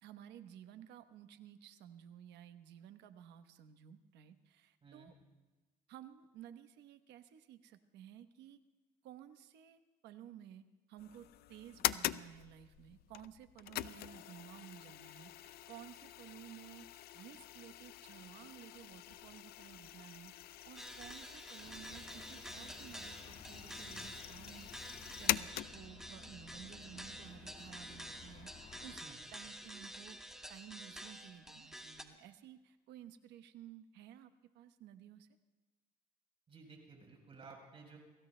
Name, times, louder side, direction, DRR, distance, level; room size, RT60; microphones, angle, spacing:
voice 1, 0.0-5.1 5.9-8.6 9.0-20.3 20.6-24.7 25.2-29.0 29.3-30.2 30.5-35.3, right 10 dB, 85° right, 9 dB, 1.0 m, -55 dB
sound 1, 11.0-26.1, left 14 dB, 70° left, 0.5 m, -43 dB
sound 2, 20.8-32.0, equal, 5° right, 1.3 m, -50 dB
sound 3, 21.6-29.0, left 5 dB, 45° left, 1.9 m, -56 dB
voice 2, 36.5-38.0, right 4 dB, 35° right, 1 dB, 4.0 m, -55 dB
29.0 x 19.5 x 2.2 m, 1.2 s
cardioid pair, 110°, 17 cm